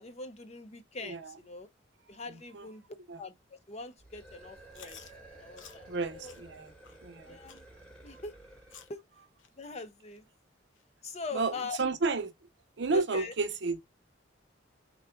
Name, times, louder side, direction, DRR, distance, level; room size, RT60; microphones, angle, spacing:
voice 1, 0.0-1.7 2.1-2.8 3.2-5.0 5.3-6.3 7.2-7.6 8.0-8.3 8.9-9.0 9.5-10.2 11.0-11.8 12.9-13.3, left 3 dB, 35° left, 0.6 m, -42 dB
voice 2, 1.0-1.3 2.5-2.7 3.1-3.2 5.9-6.7 7.0-7.4 11.3-12.3 12.8-13.8, right 3 dB, 65° right, 0.6 m, -31 dB
sound 1, 4.0-9.0, right 2 dB, 5° left, 1.0 m, -53 dB
Chewing mastication, 4.7-5.1 5.6-5.8 6.2-6.4 6.8-7.0 7.5-7.7 8.2-8.3 8.7-9.0 9.4-9.5 10.1-10.2 10.8-10.9 11.4-11.5, left 8 dB, 90° left, 0.6 m, -52 dB
3.8 x 2.3 x 3.3 m
head